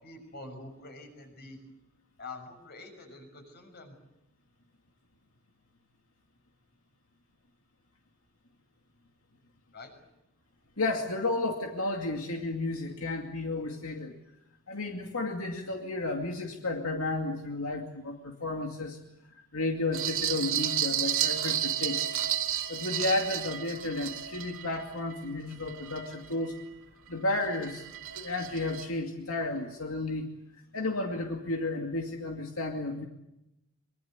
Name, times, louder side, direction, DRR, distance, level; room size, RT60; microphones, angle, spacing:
voice 1, 0.0-1.6 2.2-4.0 9.7-9.9, left 2 dB, 50° left, 5 dB, 6.5 m, -46 dB
voice 2, 10.8-14.2 14.7-19.0 19.5-22.1 22.5-26.6 27.1-27.8 28.1-30.3 30.7-33.1, left 2 dB, 85° left, 3 dB, 2.4 m, -32 dB
sound 1, 19.9-26.6 27.1-28.9, right 10 dB, 75° right, 2.8 m, -32 dB
24.5 x 23.5 x 8.2 m, 0.89 s
head